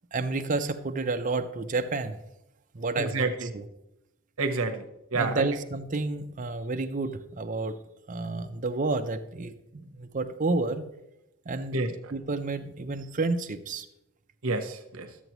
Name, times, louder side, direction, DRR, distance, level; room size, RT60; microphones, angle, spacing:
voice 1, 0.1-2.2 2.7-3.7 5.1-7.7 8.1-10.9 11.5-11.8 12.1-13.9, right 3 dB, 35° right, 8 dB, 0.5 m, -30 dB
voice 2, 3.0-3.5 4.4-4.8 5.1-5.5 11.7-11.9 14.4-15.1, right 3 dB, 75° right, 6 dB, 1.0 m, -28 dB
12.5 x 7.8 x 3.0 m, 0.88 s
head